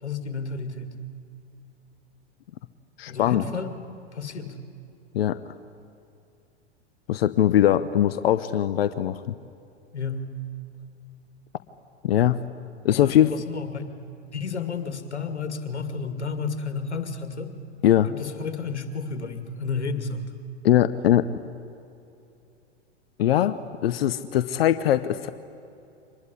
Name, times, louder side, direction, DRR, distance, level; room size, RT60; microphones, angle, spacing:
voice 1, 0.0-0.9 3.1-3.8 4.1-4.6 9.9-10.3 13.0-13.8 14.3-17.5 18.1-20.3, left 5 dB, 80° left, 8 dB, 2.3 m, -31 dB
voice 2, 3.0-3.4 5.1-5.4 7.1-9.2 12.0-12.4 12.8-13.3 17.8-18.1 20.6-21.2 23.2-23.6 23.8-25.3, left 11 dB, 60° left, 14 dB, 0.9 m, -21 dB
25.0 x 20.5 x 9.9 m, 2.7 s
figure-of-eight pair, 95°, 33 cm